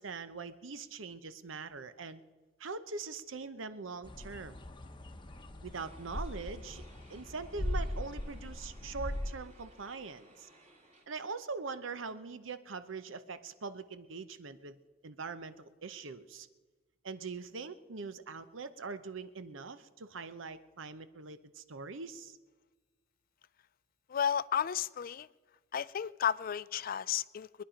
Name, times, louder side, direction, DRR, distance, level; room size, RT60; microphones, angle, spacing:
voice 1, 0.0-2.2 2.6-4.6 5.6-6.8 7.1-10.5 11.1-14.8 15.0-16.5 17.0-22.4, right 4 dB, 75° right, 12 dB, 0.8 m, -42 dB
sound 1, 4.0-9.3, left 1 dB, 25° left, 0.8 m, -40 dB
sound 2, 5.8-11.1, right 1 dB, 35° right, 2.5 m, -61 dB
voice 2, 24.1-25.3 25.7-27.6, left 8 dB, 45° left, 19 dB, 0.4 m, -33 dB
23.5 x 10.0 x 5.1 m, 1.3 s
head